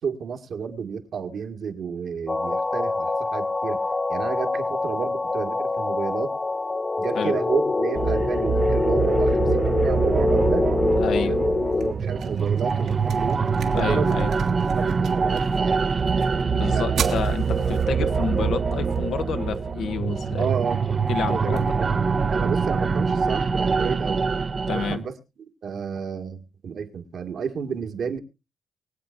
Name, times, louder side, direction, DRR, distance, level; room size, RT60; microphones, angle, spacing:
voice 1, 0.0-3.8 4.1-6.3 7.0-10.7 11.2-14.2 14.7-15.9 16.7-17.3 17.7-17.9 20.4-20.8 21.3-21.9 22.3-24.3 24.7-25.2 25.6-28.2, right 6 dB, 65° right, 1.9 m, -31 dB
sound 1, 2.3-11.9, left 3 dB, 25° left, 0.5 m, -24 dB
sound 2, 8.0-25.0, right 5 dB, 40° right, 0.8 m, -24 dB
voice 2, 11.0-11.4 13.7-14.3 16.4-20.5 21.1-21.6 24.7-25.0, left 7 dB, 75° left, 1.3 m, -29 dB
sound 3, 11.2-23.2, right 8 dB, 85° right, 2.4 m, -41 dB
24.0 x 8.3 x 2.6 m
cardioid pair, 90°, 0 cm